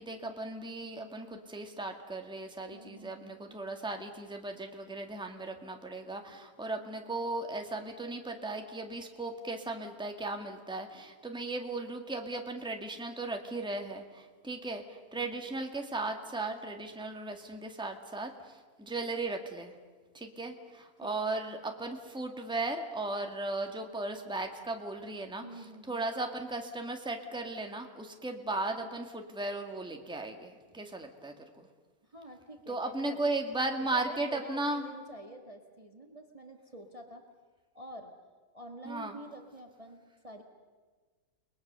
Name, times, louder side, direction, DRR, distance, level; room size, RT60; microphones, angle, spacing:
voice 1, 0.0-19.7 20.1-25.4 25.9-31.7 32.7-34.8 38.8-39.2, right 2 dB, 5° right, 4 dB, 1.8 m, -36 dB
voice 2, 2.7-3.6 15.1-15.4 21.0-21.3 25.4-26.0 32.0-33.3 33.7-37.2 37.7-38.1 38.5-40.4, right 1 dB, 20° right, 4 dB, 1.7 m, -47 dB
30.0 x 21.0 x 6.8 m, 1.4 s
omnidirectional pair, 1.6 m